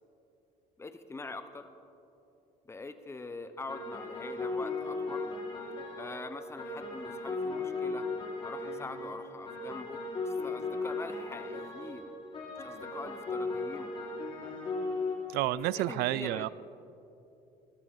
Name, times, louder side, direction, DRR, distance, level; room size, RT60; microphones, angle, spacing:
voice 1, 0.8-1.7 2.7-5.3 5.9-8.1 8.4-12.1 12.6-13.9 15.6-16.5, left 3 dB, 15° left, 10 dB, 0.8 m, -44 dB
sound 1, 3.7-15.5, left 3 dB, 35° left, 3.1 m, -36 dB
voice 2, 15.3-16.5, right 16 dB, 80° right, 20 dB, 0.4 m, -30 dB
20.5 x 13.5 x 4.3 m, 2.8 s
cardioid pair, 130°, 16 cm